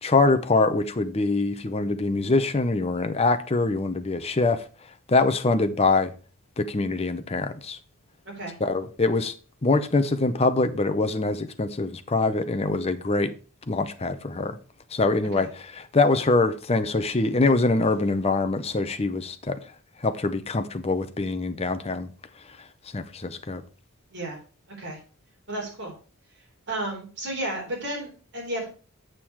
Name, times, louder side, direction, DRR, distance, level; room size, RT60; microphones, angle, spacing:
voice 1, 0.0-4.6 5.1-6.1 6.6-7.8 8.6-9.3 9.6-13.3 13.7-14.6 14.9-19.6 20.0-22.1 22.9-23.6, left 3 dB, 25° left, 0.7 m, -24 dB
voice 2, 25.5-25.9 26.7-28.6, right 1 dB, 50° right, 3.7 m, -32 dB
7.4 x 6.7 x 4.6 m
head